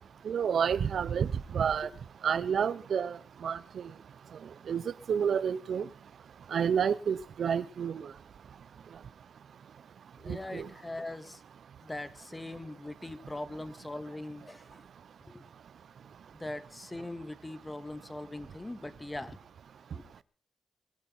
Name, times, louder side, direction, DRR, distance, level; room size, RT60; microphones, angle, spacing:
voice 1, 0.2-1.3 1.5-1.9 2.2-3.2 3.4-3.8 4.7-4.8 5.1-5.9 6.5-8.1 10.3-10.7, right 7 dB, 70° right, 0.7 m, -29 dB
voice 2, 10.2-11.4 11.8-14.9 15.3-15.4 16.3-19.4 19.9-20.0, left 2 dB, 20° left, 1.8 m, -41 dB
23.0 x 9.0 x 5.7 m
cardioid pair, 60°, 0 cm